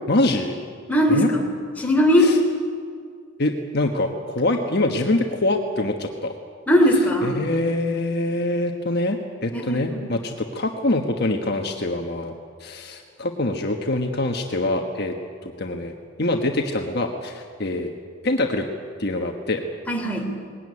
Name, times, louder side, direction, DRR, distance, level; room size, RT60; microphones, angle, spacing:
voice 1, 0.1-0.5 1.1-1.3 2.2-2.4 3.4-6.3 7.2-12.3 12.6-15.1 15.4-15.9 16.2-17.9 18.2-18.7 19.0-19.6, left 2 dB, 50° left, 3 dB, 1.3 m, -24 dB
voice 2, 0.9-1.4 1.8-2.3 6.7-7.4 9.5-10.1 19.9-20.4, equal, 5° left, 0 dB, 3.3 m, -19 dB
20.5 x 17.5 x 9.7 m, 2.1 s
head